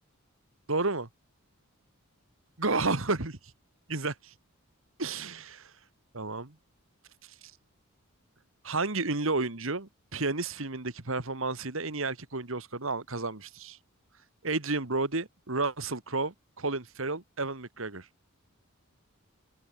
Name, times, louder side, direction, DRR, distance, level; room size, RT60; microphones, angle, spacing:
voice 1, 0.7-1.1 2.6-3.4 3.9-4.3 5.0-5.7 6.1-6.5 8.6-13.8 14.4-18.1, right 3 dB, 65° right, 2.0 m, -31 dB
head